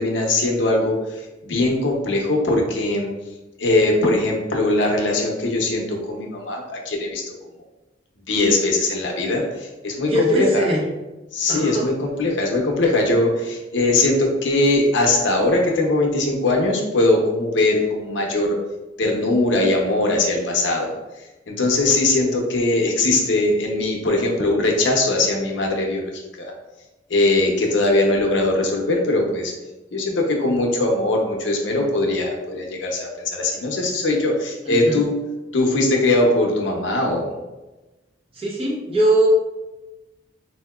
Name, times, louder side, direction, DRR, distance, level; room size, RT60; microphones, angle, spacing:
voice 1, 0.0-3.1 3.6-7.3 8.3-10.7 11.3-18.6 19.0-20.9 21.5-26.5 27.1-29.5 29.9-35.2 35.5-37.4, left 2 dB, 70° left, 1 dB, 0.7 m, -20 dB
voice 2, 10.0-10.8 11.5-11.9 34.7-35.0 38.3-39.3, right 1 dB, 30° right, -4 dB, 0.8 m, -21 dB
3.6 x 2.7 x 2.3 m, 1.1 s
head